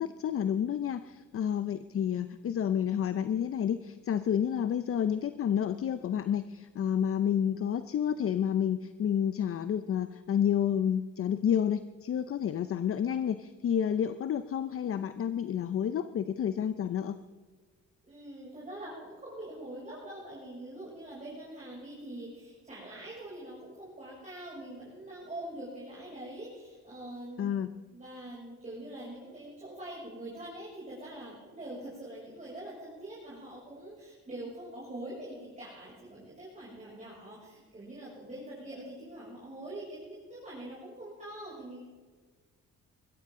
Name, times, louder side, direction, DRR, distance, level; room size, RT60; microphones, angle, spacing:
voice 1, 0.0-17.2 27.4-27.7, left 9 dB, 45° left, 12 dB, 0.6 m, -30 dB
voice 2, 18.0-27.5 27.9-41.8, right 1 dB, 25° right, -7 dB, 6.5 m, -44 dB
21.5 x 15.0 x 3.7 m, 1.4 s
cardioid pair, 90°, 30 cm